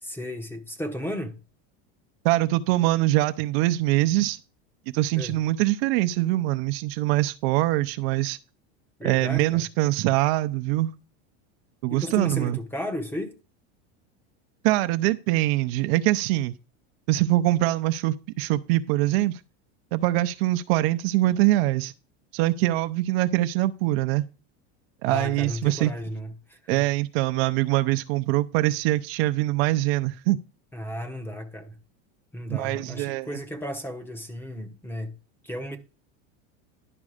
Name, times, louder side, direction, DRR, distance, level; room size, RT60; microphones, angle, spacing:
voice 1, 0.0-1.4 5.1-5.4 9.0-9.6 11.9-13.4 25.1-26.9 30.7-31.8 32.3-35.1 35.4-35.8, equal, 5° left, 0.9 m, -34 dB
voice 2, 2.2-4.4 4.9-8.4 9.0-10.9 11.8-12.6 14.6-16.5 17.1-19.4 19.9-21.9 22.3-24.2 25.0-25.9 26.7-30.4 32.5-33.3, right 17 dB, 60° right, 0.6 m, -23 dB
11.0 x 5.1 x 5.0 m
supercardioid pair, 145°, 34 cm